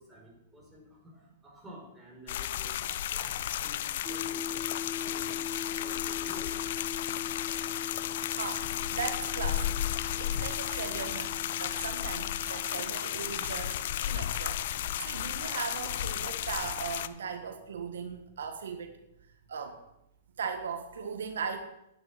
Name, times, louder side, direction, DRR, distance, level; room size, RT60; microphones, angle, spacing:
voice 1, 0.0-2.8 3.1-3.4 3.6-5.4 5.7-6.6 13.8-13.9, equal, 10° right, -2 dB, 5.5 m, -50 dB
sound 1, 2.3-17.1, left 12 dB, 65° left, 0.7 m, -33 dB
sound 2, 4.0-19.3, left 7 dB, 5° left, 2.1 m, -43 dB
voice 2, 8.3-19.0 19.5-19.8 20.4-21.6, right 6 dB, 85° right, 8 dB, 1.5 m, -38 dB
10.5 x 9.7 x 7.8 m, 0.83 s
hypercardioid pair, 130°, 0 cm